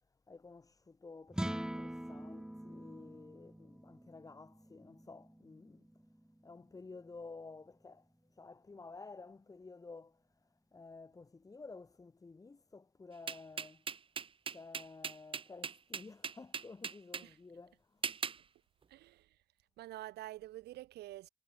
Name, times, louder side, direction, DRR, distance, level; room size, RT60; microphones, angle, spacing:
voice 1, 0.3-5.9 6.4-10.2 10.7-13.8 14.5-18.0, left 3 dB, 20° left, 2.9 m, -52 dB
sound 1, 1.3-7.7, right 1 dB, 5° right, 3.3 m, -45 dB
sound 2, 13.3-17.3 18.0-18.4, right 6 dB, 30° right, 1.2 m, -39 dB
voice 2, 18.9-19.4 19.8-21.3, right 16 dB, 75° right, 3.2 m, -47 dB
cardioid pair, 110°, 17 cm